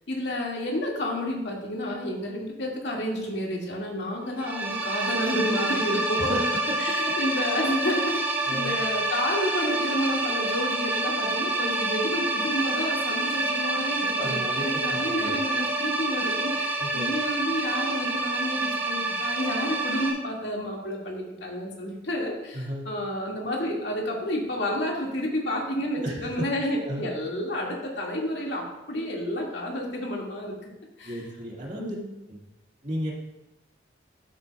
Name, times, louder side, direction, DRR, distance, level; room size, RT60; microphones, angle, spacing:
voice 1, 0.1-6.3 6.8-8.2 8.5-30.7 31.0-31.2 31.8-32.1, left 1 dB, 75° left, -2 dB, 2.0 m, -30 dB
sound 1, 4.4-20.1, right 2 dB, 10° right, 1.6 m, -28 dB
voice 2, 6.2-6.6 7.0-7.1 8.5-8.8 14.2-15.3 16.8-17.1 22.5-22.9 26.0-26.5 26.8-27.0 31.0-32.0 32.3-32.4 32.8-33.1, equal, 45° right, -3 dB, 2.0 m, -33 dB
12.5 x 8.1 x 2.3 m, 0.99 s
head